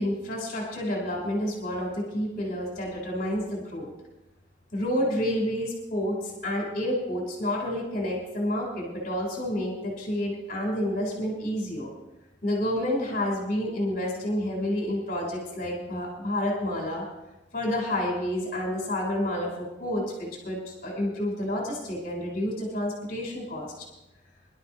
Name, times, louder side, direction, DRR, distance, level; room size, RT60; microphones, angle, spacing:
voice 1, 0.0-3.9 4.7-11.9 12.4-17.1 17.5-23.9, left 1 dB, 45° left, -3 dB, 3.6 m, -29 dB
24.0 x 12.0 x 2.9 m, 0.99 s
head